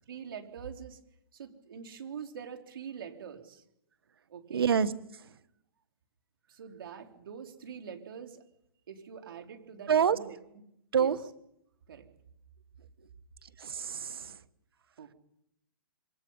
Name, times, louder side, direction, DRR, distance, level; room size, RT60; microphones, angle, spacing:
voice 1, 0.1-1.0 1.3-3.6 4.3-4.7 6.5-8.4 8.9-10.4 11.0-11.1 11.9-12.1 15.0-15.1, right 7 dB, 70° right, 4 dB, 3.7 m, -44 dB
voice 2, 4.5-5.4 9.9-10.2 10.9-11.2 13.4-14.4, right 7 dB, 85° right, 13 dB, 1.5 m, -28 dB
27.0 x 24.0 x 5.6 m, 0.81 s
hypercardioid pair, 155°, 12 cm